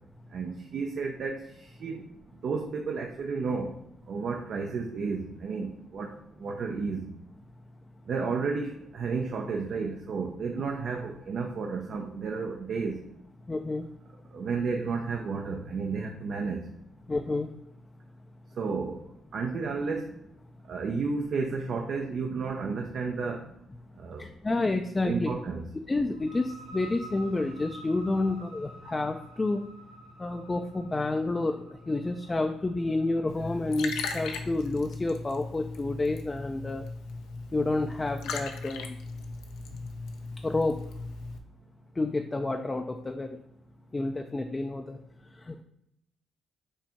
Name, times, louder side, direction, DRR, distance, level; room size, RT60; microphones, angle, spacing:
voice 1, 0.3-2.1 2.4-3.8 4.1-7.1 8.1-13.0 14.3-16.7 18.6-19.0 19.3-20.1 20.7-23.5 24.0-24.3 25.0-25.6, right 4 dB, 60° right, 2 dB, 0.5 m, -32 dB
voice 2, 13.5-13.9 17.1-17.5 24.2-25.3 25.9-29.6 30.2-36.9 37.5-39.0 40.4-40.9 41.9-43.4 43.9-45.6, left 2 dB, 20° left, 4 dB, 0.4 m, -30 dB
sound 1, 26.1-33.6, equal, 80° right, 1.4 m, -50 dB
Liquid, 33.3-41.4, left 4 dB, 90° left, 0.5 m, -38 dB
4.5 x 2.7 x 4.4 m, 0.79 s
cardioid pair, 90°, 0 cm